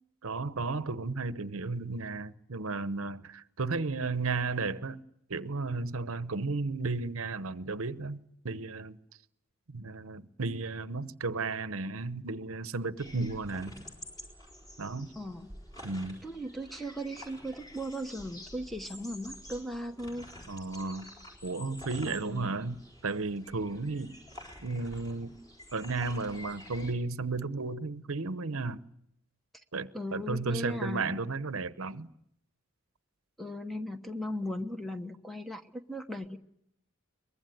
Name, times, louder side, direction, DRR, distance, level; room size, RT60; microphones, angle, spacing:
voice 1, 0.2-5.0 5.3-9.0 9.7-13.7 14.8-15.1 15.8-16.2 20.5-21.1 21.4-24.2 24.6-25.4 25.7-28.8 29.7-32.1, right 3 dB, 75° right, 0.9 m, -34 dB
sound 1, 13.0-26.9, left 1 dB, 20° left, 4.2 m, -49 dB
voice 2, 15.2-15.5 16.2-20.3 22.0-22.5 29.9-31.1 33.4-36.4, equal, ahead, 1.0 m, -37 dB
23.0 x 21.0 x 9.2 m
head